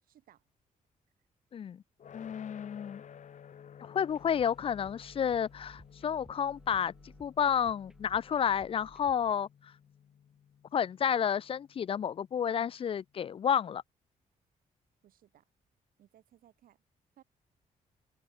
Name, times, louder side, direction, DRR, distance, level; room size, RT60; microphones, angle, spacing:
voice 1, 0.0-0.5 2.5-2.6 15.0-15.5 16.0-16.8 17.2-17.3, right 12 dB, 90° right, 5.8 m, -62 dB
voice 2, 1.5-1.8 2.1-3.0 3.8-6.9 7.2-9.5 10.7-13.8, left 8 dB, 40° left, 0.3 m, -31 dB
sound 1, 2.0-13.0, left 8 dB, 60° left, 1.8 m, -55 dB
sound 2, 4.1-9.3, right 1 dB, 5° right, 1.2 m, -58 dB
cardioid pair, 100°, 14 cm